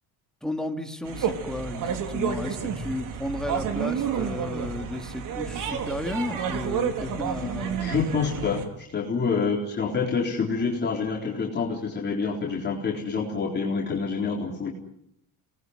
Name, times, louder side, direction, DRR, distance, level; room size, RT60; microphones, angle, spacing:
voice 1, 0.4-7.8 8.2-8.3, left 1 dB, ahead, 4 dB, 2.6 m, -33 dB
sound 1, 1.0-8.6, right 7 dB, 55° right, 3.6 m, -30 dB
voice 2, 7.1-14.7, left 5 dB, 30° left, -2 dB, 4.1 m, -27 dB
27.0 x 20.0 x 9.7 m, 0.75 s
cardioid pair, 135°, 37 cm